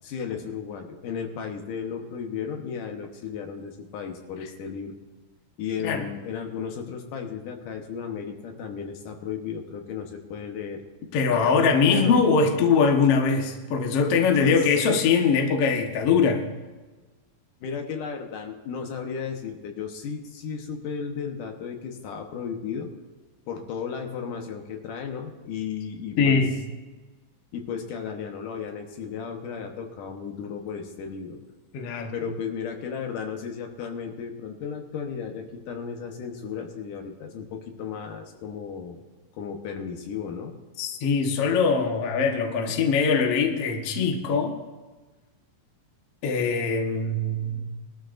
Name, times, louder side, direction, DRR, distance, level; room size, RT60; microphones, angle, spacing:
voice 1, 0.0-5.0 5.6-10.8 11.3-12.2 14.4-14.8 17.6-22.9 23.5-26.4 27.5-31.4 32.1-39.0 39.3-40.6, left 6 dB, 70° left, 3 dB, 2.6 m, -34 dB
voice 2, 11.1-16.5 26.2-26.5 31.7-32.1 40.8-44.5 46.2-47.7, left 5 dB, 55° left, 2 dB, 1.9 m, -22 dB
21.5 x 13.0 x 2.6 m, 1.3 s
omnidirectional pair, 4.0 m